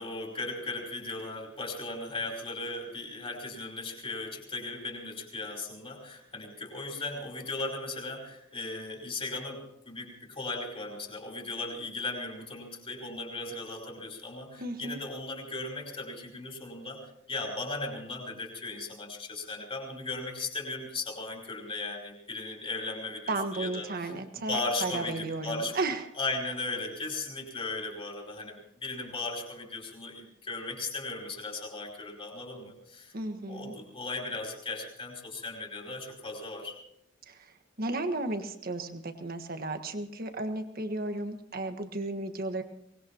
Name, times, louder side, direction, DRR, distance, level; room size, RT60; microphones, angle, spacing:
voice 1, 0.0-24.1 24.5-25.7 26.2-33.1 33.5-36.8, left 2 dB, 30° left, -1 dB, 5.0 m, -37 dB
voice 2, 14.6-15.0 23.3-26.0 33.1-33.7 37.3-42.6, right 2 dB, 50° right, 7 dB, 1.5 m, -34 dB
23.5 x 20.0 x 3.0 m, 0.74 s
head